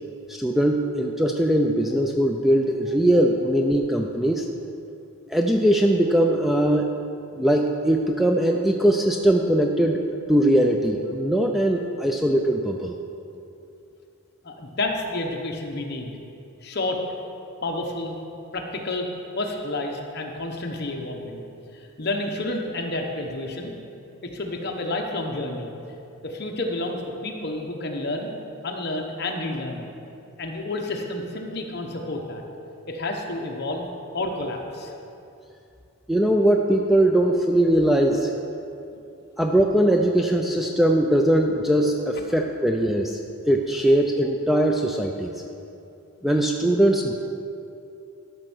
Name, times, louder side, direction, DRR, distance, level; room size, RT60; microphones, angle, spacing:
voice 1, 0.3-4.5 5.3-6.9 7.4-10.0 10.3-12.9 36.1-38.3 39.4-43.2 43.5-45.3 46.2-47.1, right 1 dB, ahead, 2 dB, 0.3 m, -20 dB
voice 2, 14.4-16.1 16.6-17.0 17.6-18.2 18.5-19.1 19.3-21.4 21.7-23.7 24.2-25.7 26.2-28.3 28.6-29.9 30.4-32.4 32.9-34.9, left 2 dB, 45° left, 1 dB, 1.0 m, -30 dB
13.0 x 5.4 x 6.1 m, 2.7 s
head